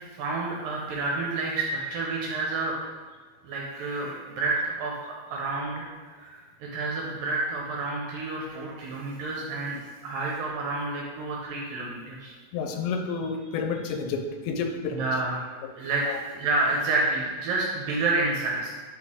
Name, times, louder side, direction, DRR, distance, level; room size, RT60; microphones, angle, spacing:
voice 1, 0.1-2.8 3.4-5.8 6.2-12.3 14.9-15.5 15.8-18.7, right 3 dB, 75° right, -2 dB, 2.2 m, -29 dB
voice 2, 12.5-15.0 15.6-15.7 16.1-16.2, left 5 dB, 90° left, 4 dB, 2.9 m, -30 dB
8.4 x 4.6 x 3.6 m, 1.5 s
omnidirectional pair, 4.7 m